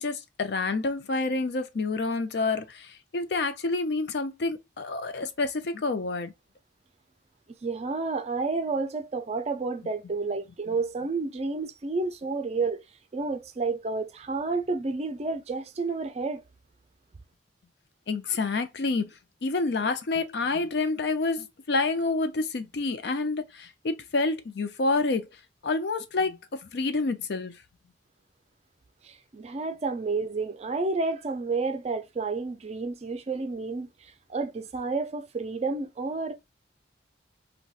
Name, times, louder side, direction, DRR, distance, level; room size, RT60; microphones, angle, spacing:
voice 1, 0.0-6.3 18.1-19.1 19.4-25.3 25.6-27.6, left 3 dB, 65° left, 0.5 m, -28 dB
voice 2, 7.6-12.8 13.1-16.4 29.0-36.3, right 3 dB, 35° right, 0.4 m, -30 dB
4.0 x 2.2 x 2.3 m
head